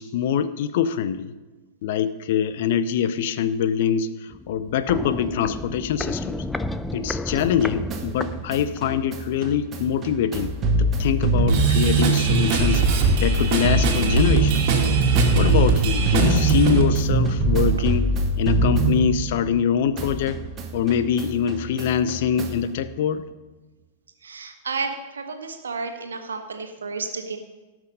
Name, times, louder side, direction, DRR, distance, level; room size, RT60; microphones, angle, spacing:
voice 1, 0.0-1.3 1.8-6.4 6.9-14.8 15.3-18.1 18.4-20.4 20.7-23.2, left 8 dB, 50° left, 14 dB, 0.6 m, -24 dB
Walk footsteps, 4.3-9.0 9.3-9.4, left 1 dB, 5° left, 0.5 m, -32 dB
sound 1, 7.4-19.7 20.0-22.7, right 3 dB, 25° right, 1.3 m, -23 dB
Drum kit / Drum, 11.5-16.8, right 4 dB, 40° right, 2.2 m, -24 dB
voice 2, 24.2-27.4, right 4 dB, 70° right, 5 dB, 1.5 m, -31 dB
17.5 x 6.1 x 5.3 m, 1.2 s
figure-of-eight pair, 95°, 0 cm